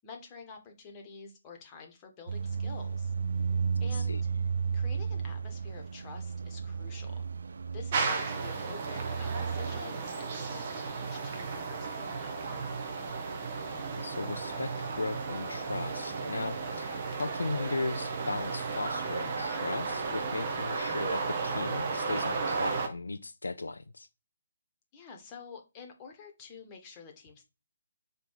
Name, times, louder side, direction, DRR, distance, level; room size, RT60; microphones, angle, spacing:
voice 1, 0.0-4.2 4.7-7.3 7.7-12.3 24.9-27.4, left 5 dB, 20° left, 1.3 m, -49 dB
sound 1, 2.3-9.8, right 6 dB, 55° right, 0.3 m, -33 dB
voice 2, 3.9-4.2 13.7-24.1, left 3 dB, 70° left, 0.4 m, -37 dB
sound 2, 7.9-22.9, right 4 dB, 35° right, 1.1 m, -34 dB
5.3 x 4.5 x 4.8 m
figure-of-eight pair, 140°, 0 cm